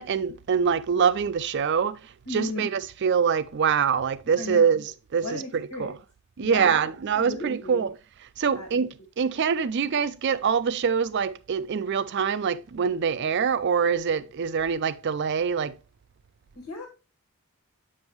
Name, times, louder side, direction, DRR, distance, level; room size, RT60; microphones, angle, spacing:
voice 1, 0.0-2.0 2.3-6.0 6.4-8.0 8.4-15.8, right 6 dB, 50° right, 0.4 m, -25 dB
voice 2, 2.3-2.7 4.4-4.7 5.2-5.9 6.4-6.8 7.1-7.9 8.5-8.7 16.6-16.9, left 2 dB, 90° left, 1.7 m, -35 dB
8.0 x 5.3 x 3.0 m
head